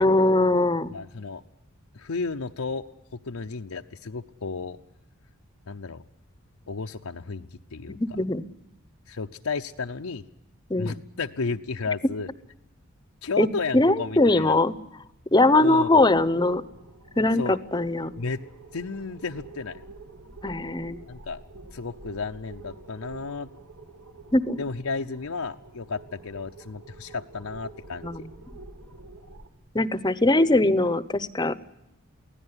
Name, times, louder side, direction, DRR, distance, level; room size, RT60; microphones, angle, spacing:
voice 1, 0.0-0.9 8.0-8.4 10.7-11.0 13.4-13.5 13.7-14.7 15.3-16.6 17.2-18.1 20.4-21.0 24.3-24.6 28.0-28.2 29.7-31.5, left 2 dB, 20° left, 16 dB, 0.8 m, -21 dB
voice 2, 0.9-1.4 1.9-2.9 3.1-4.8 5.7-6.0 6.7-8.0 9.1-10.2 10.8-12.3 13.2-14.6 15.6-16.0 17.4-17.6 18.2-19.8 21.1-21.4 21.7-23.5 24.6-28.3, left 4 dB, 85° left, 5 dB, 0.8 m, -33 dB
sound 1, 15.8-29.5, right 3 dB, 70° right, 2.3 m, -47 dB
24.0 x 16.5 x 9.8 m, 0.88 s
head